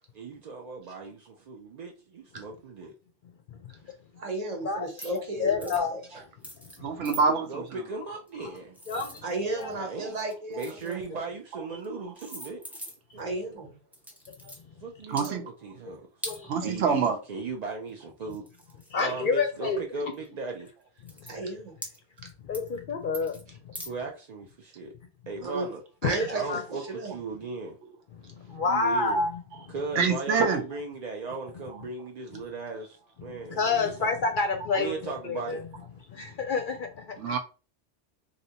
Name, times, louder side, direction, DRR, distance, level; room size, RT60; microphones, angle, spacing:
voice 1, 0.1-2.9 7.5-9.1 9.7-10.2 10.5-12.9 13.4-13.6 14.8-16.0 16.5-18.4 19.0-20.7 23.8-24.9 25.3-25.8 26.3-27.8 28.6-29.2 29.7-34.1 34.8-35.6, right 3 dB, 65° right, 0.4 m, -37 dB
voice 2, 4.2-6.0 9.2-11.1 13.2-13.7 21.2-21.8 25.4-25.7 26.0-26.6 26.9-27.1, right 2 dB, 40° right, 0.8 m, -33 dB
sound 1, 4.9-5.2 5.6-5.9 6.4-6.8 7.0-7.2 8.3-9.7 10.1-11.1 11.8-11.9 12.2-13.2 13.9-14.6 15.1-15.3 16.2-16.4 17.9-18.0 18.3-19.4 20.1-20.3 20.7-20.8 21.0-21.3 21.8-22.3 22.5-22.8 23.1-23.4 23.7-23.9, right 1 dB, ahead, 0.5 m, -42 dB
voice 3, 5.4-5.9 6.6-6.9 8.9-9.2 9.5-9.8 14.4-14.5 16.2-16.7 18.9-19.8 21.0-21.5 22.4-23.7 26.0-26.6 28.2-29.7 33.2-35.6 36.1-37.4, left 4 dB, 60° left, 0.6 m, -29 dB
voice 4, 6.8-7.6 15.1-15.4 16.5-17.2 30.0-30.6 37.2-37.4, right 5 dB, 85° right, 1.0 m, -25 dB
3.2 x 2.6 x 2.7 m
omnidirectional pair, 1.2 m